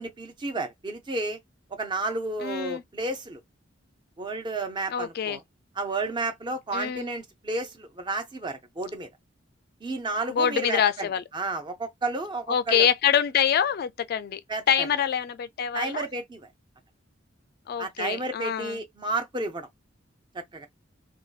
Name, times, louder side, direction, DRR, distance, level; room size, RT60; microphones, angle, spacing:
voice 1, 0.0-1.4 1.7-3.4 4.2-5.4 5.8-9.1 9.8-12.9 14.5-14.9 15.7-16.5 17.8-19.7 20.3-20.7, right 2 dB, 25° right, 0.5 m, -32 dB
voice 2, 2.4-2.8 4.9-5.4 6.7-7.1 10.3-11.2 12.5-14.4 14.7-16.1 17.7-18.8, left 8 dB, 55° left, 0.3 m, -25 dB
2.6 x 2.2 x 2.3 m
head